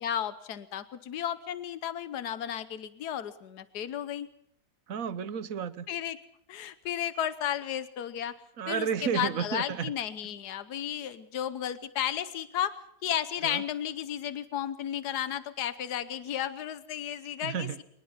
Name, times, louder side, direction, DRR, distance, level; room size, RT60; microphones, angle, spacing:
voice 1, 0.0-4.3 5.9-6.2 6.5-8.3 8.7-8.9 9.1-12.8 13.0-17.8, left 10 dB, 80° left, 14 dB, 1.5 m, -33 dB
voice 2, 4.9-5.9 8.6-9.9 13.4-13.6 17.4-17.8, right 7 dB, 60° right, 15 dB, 1.4 m, -32 dB
23.0 x 20.0 x 5.7 m, 0.74 s
omnidirectional pair, 1.7 m